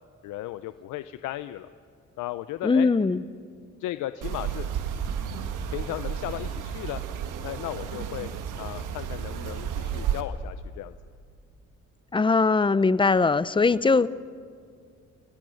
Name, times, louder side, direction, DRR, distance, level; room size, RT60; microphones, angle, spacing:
voice 1, 0.2-1.7 2.2-2.9 3.8-4.7 5.7-7.0 7.4-8.3 8.6-11.0, left 14 dB, 90° left, 12 dB, 0.6 m, -35 dB
voice 2, 2.6-3.2 12.1-14.1, left 4 dB, 15° left, 17 dB, 0.6 m, -21 dB
sound 1, 4.2-10.2, right 8 dB, 85° right, 1.5 m, -32 dB
28.5 x 17.0 x 6.4 m, 2.2 s
cardioid pair, 90°, 30 cm